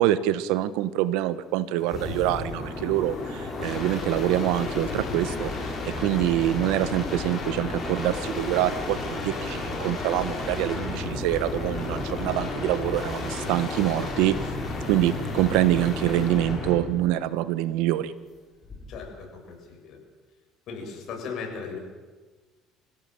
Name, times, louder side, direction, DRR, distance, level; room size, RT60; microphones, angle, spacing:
voice 1, 0.0-5.5 5.8-14.4 14.9-18.1, right 13 dB, 85° right, 15 dB, 1.1 m, -25 dB
sound 1, 1.8-16.9 18.6-19.1, left 2 dB, 25° left, 6.9 m, -32 dB
voice 2, 18.9-20.0 20.7-21.8, left 5 dB, 55° left, 1 dB, 7.6 m, -37 dB
26.5 x 16.5 x 7.8 m, 1.3 s
cardioid pair, 120°, 0 cm